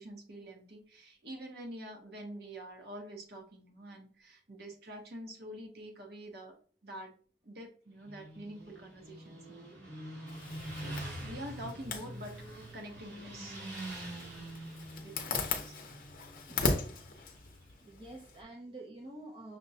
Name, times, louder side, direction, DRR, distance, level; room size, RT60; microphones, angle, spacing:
voice 1, 0.0-6.6 6.8-7.1 7.4-9.7 10.7-12.4 12.7-13.6 15.0-15.8, right 1 dB, 60° right, 1 dB, 0.9 m, -46 dB
Motorcycle, 7.9-17.7, right 1 dB, 90° right, 1.8 m, -45 dB
Zipper (clothing), 10.3-18.4, left 4 dB, 50° left, 0.6 m, -39 dB
voice 2, 17.8-19.6, right 2 dB, 30° right, 0 dB, 0.5 m, -48 dB
5.9 x 2.1 x 2.7 m, 0.43 s
head